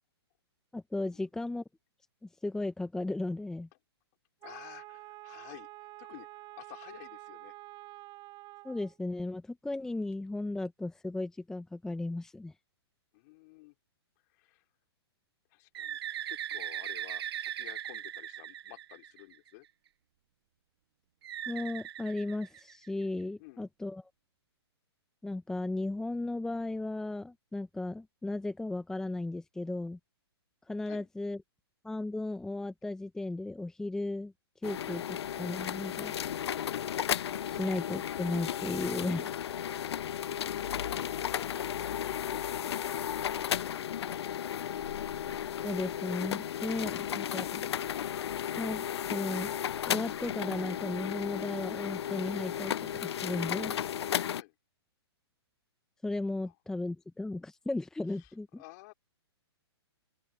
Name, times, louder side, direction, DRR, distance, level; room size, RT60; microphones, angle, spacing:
voice 1, 0.7-1.6 2.2-3.7 8.6-12.5 21.5-24.0 25.2-30.0 30.7-31.4 31.8-34.3 34.6-36.1 37.4-39.3 45.6-47.6 48.6-49.5 49.9-53.8 56.0-58.6, left 2 dB, 5° left, 0.8 m, -35 dB
voice 2, 4.4-7.5 13.1-13.8 14.3-14.7 15.5-16.0 16.3-19.7 23.4-23.6 30.9-31.1 37.5-37.7 40.2-44.8 54.3-54.5 56.4-56.5 58.2-58.9, left 24 dB, 40° left, 3.8 m, -52 dB
Wind instrument woodwind instrument, 4.4-9.0, right 20 dB, 30° right, 6.4 m, -48 dB
Bird, 15.7-19.5 21.2-23.0, right 11 dB, 65° right, 0.5 m, -39 dB
sound 1, 34.6-54.4, left 9 dB, 70° left, 0.5 m, -34 dB
open air
hypercardioid pair, 135°, 14 cm